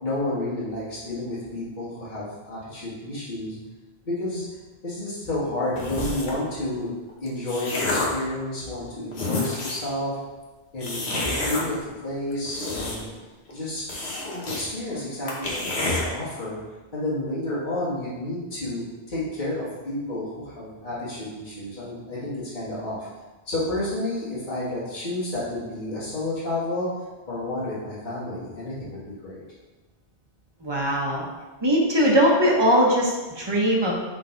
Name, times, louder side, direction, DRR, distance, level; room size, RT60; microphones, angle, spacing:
voice 1, 0.0-3.6 4.1-4.4 4.8-6.9 7.2-10.2 10.7-13.1 13.5-13.8 14.5-16.6 16.9-23.0 23.5-26.9 27.3-29.4, left 1 dB, 45° left, -10 dB, 1.8 m, -30 dB
sound 1, 5.8-6.4 7.1-8.2 8.8-8.9 9.1-9.9 10.8-11.6 12.3-13.2 13.5-13.6 13.9-14.6 14.9-15.0 15.3-16.0, left 2 dB, 80° left, 1.4 m, -28 dB
voice 2, 30.6-31.3 31.6-33.9, equal, 25° right, -2 dB, 1.0 m, -20 dB
5.2 x 4.0 x 4.5 m, 1.2 s
omnidirectional pair, 1.1 m